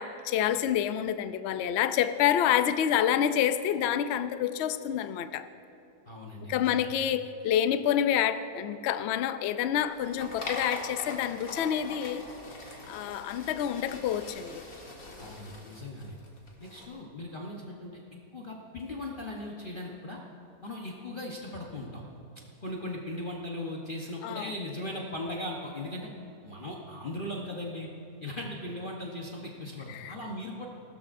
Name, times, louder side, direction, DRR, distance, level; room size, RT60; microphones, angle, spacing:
voice 1, 0.0-5.5 6.5-12.2 12.9-14.6 24.2-24.5 29.9-30.2, left 10 dB, 85° left, 11 dB, 0.6 m, -28 dB
voice 2, 6.1-6.8 15.2-16.2 16.6-18.0 18.3-20.2 20.6-22.0 22.6-26.1 26.4-27.9 28.2-30.7, left 1 dB, 35° left, -2 dB, 1.1 m, -38 dB
sound 1, 9.7-16.9, left 2 dB, 55° left, 2.1 m, -42 dB
20.0 x 13.0 x 2.6 m, 2.9 s
omnidirectional pair, 1.7 m